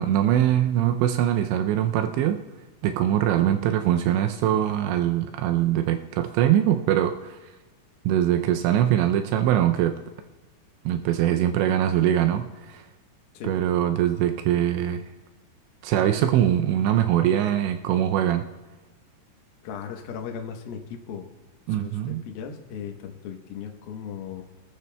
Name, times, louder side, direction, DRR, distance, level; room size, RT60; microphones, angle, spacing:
voice 1, 0.0-2.4 2.8-7.4 8.1-10.0 10.9-12.8 13.4-15.0 15.8-18.5 21.7-22.2, right 11 dB, 90° right, 6 dB, 2.5 m, -22 dB
voice 2, 19.6-21.3 21.8-24.4, left 7 dB, 75° left, 2 dB, 2.2 m, -37 dB
26.0 x 13.5 x 2.2 m, 1.2 s
omnidirectional pair, 5.7 m